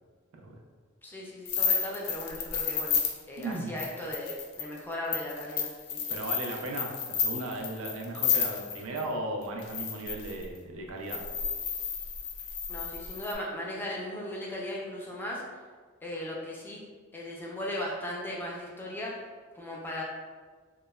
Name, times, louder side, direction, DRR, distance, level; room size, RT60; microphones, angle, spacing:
voice 1, 1.0-3.0 3.3-6.1 12.7-15.4 16.0-16.8 17.1-19.2 19.5-20.0, left 1 dB, 10° left, -3 dB, 0.3 m, -37 dB
sound 1, 1.4-9.0 9.6-10.4 11.1-13.3, left 7 dB, 90° left, 0.4 m, -31 dB
voice 2, 3.4-3.7 6.1-11.2, right 2 dB, 75° right, 1 dB, 0.4 m, -36 dB
3.0 x 2.0 x 2.2 m, 1.5 s
head